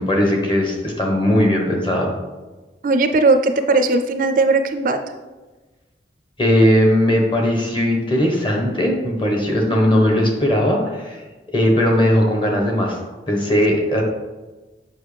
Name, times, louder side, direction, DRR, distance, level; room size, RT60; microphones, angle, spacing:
voice 1, 0.0-2.1 6.4-11.2 11.5-13.0 13.3-14.0, equal, 30° left, 1 dB, 1.1 m, -18 dB
voice 2, 2.8-5.0, right 3 dB, 50° right, 8 dB, 0.4 m, -17 dB
7.3 x 5.3 x 3.3 m, 1.2 s
head